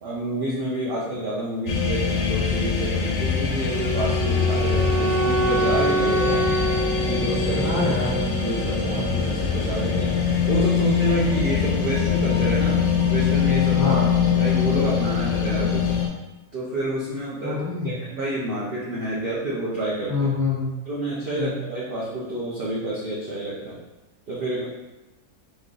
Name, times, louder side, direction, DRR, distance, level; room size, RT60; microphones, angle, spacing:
voice 1, 0.0-6.4 7.0-12.8 13.1-14.0 14.3-15.9 16.5-20.3 20.8-23.8 24.3-24.6, right 1 dB, 45° right, -7 dB, 0.8 m, -29 dB
sound 1, 1.7-16.1, left 6 dB, 60° left, 0.9 m, -23 dB
Wind instrument woodwind instrument, 3.6-8.7, right 1 dB, 80° right, 0.3 m, -26 dB
voice 2, 7.5-8.1 13.7-14.0 17.4-17.9 20.1-20.7 21.4-21.6, left 4 dB, 10° right, -8 dB, 1.2 m, -26 dB
3.8 x 3.1 x 3.9 m, 1.0 s
omnidirectional pair, 1.6 m